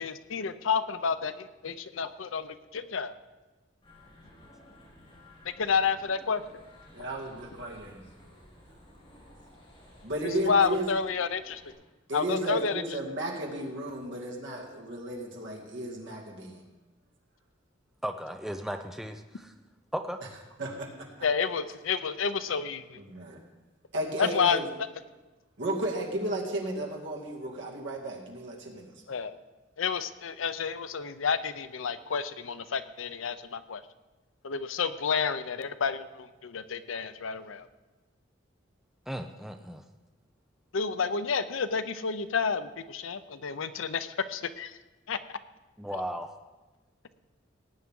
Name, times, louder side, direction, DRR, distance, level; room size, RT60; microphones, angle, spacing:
voice 1, 0.0-3.1 5.4-6.6 10.5-11.6 12.1-12.8 21.2-23.0 24.2-24.6 29.1-29.4 29.8-33.8 34.4-37.7 40.7-44.7 45.1-45.2 45.9-46.0, left 6 dB, 80° left, 12 dB, 0.6 m, -30 dB
sound 1, 3.8-11.7, left 1 dB, 30° left, 4.5 m, -55 dB
voice 2, 6.9-8.0 10.0-10.9 12.1-16.6 20.6-21.3 23.0-23.4 23.9-24.7 25.6-28.9, right 1 dB, 65° right, -1 dB, 2.4 m, -34 dB
voice 3, 18.0-19.5 19.9-20.2 39.1-39.8 45.8-46.3, equal, ahead, 5 dB, 0.5 m, -36 dB
18.5 x 9.3 x 3.8 m, 1.2 s
head